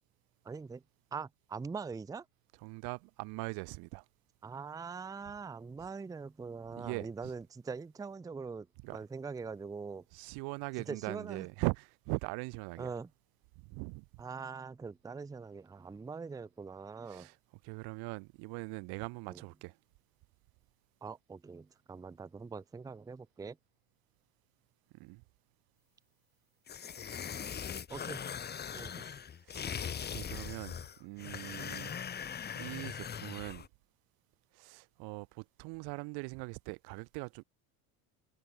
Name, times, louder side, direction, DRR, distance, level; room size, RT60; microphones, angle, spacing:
voice 1, 0.4-0.8 1.1-2.3 4.4-8.7 8.9-10.0 10.9-11.5 12.8-13.1 14.2-17.3 19.3-19.4 21.0-23.6 27.9-28.2 28.7-29.1, right 5 dB, 10° right, 0.6 m, -43 dB
voice 2, 2.6-4.1 6.8-7.3 8.8-9.0 10.1-13.0 13.6-14.1 17.1-17.4 17.6-19.8 24.9-25.2 29.4-32.0 32.5-33.7 34.5-37.4, right 30 dB, 80° right, 1.6 m, -41 dB
sound 1, 26.7-33.7, left 8 dB, 25° left, 1.3 m, -41 dB
cardioid pair, 135°, 38 cm